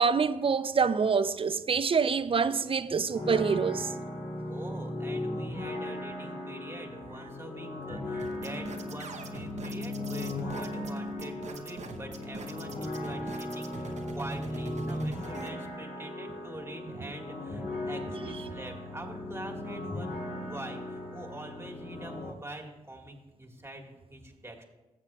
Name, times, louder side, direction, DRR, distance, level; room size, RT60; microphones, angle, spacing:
voice 1, 0.0-3.9, right 5 dB, 40° right, 0.5 m, -26 dB
sound 1, 3.1-22.3, left 1 dB, 65° left, 2.9 m, -37 dB
voice 2, 4.5-24.6, right 1 dB, 20° right, 1.8 m, -44 dB
sound 2, 8.2-15.5, right 4 dB, 55° right, 0.9 m, -44 dB
16.0 x 7.2 x 2.4 m
supercardioid pair, 55°, 14 cm